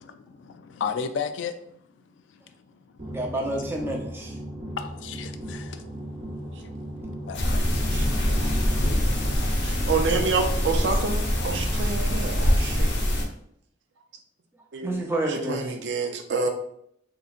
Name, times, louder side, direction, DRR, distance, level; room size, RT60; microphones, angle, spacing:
voice 1, 0.0-1.5 4.8-5.8 7.3-7.8 9.5-9.7, left 6 dB, 85° left, 0.3 m, -34 dB
voice 2, 3.0-4.3 14.8-15.7, right 1 dB, 15° right, 0.6 m, -29 dB
sound 1, 3.0-9.4, right 1 dB, 45° right, 0.9 m, -37 dB
sound 2, 7.3-13.2, equal, 70° left, 0.8 m, -24 dB
voice 3, 9.6-12.9 14.7-15.0 15.3-16.5, right 4 dB, 75° right, 0.5 m, -28 dB
3.7 x 2.9 x 2.4 m
head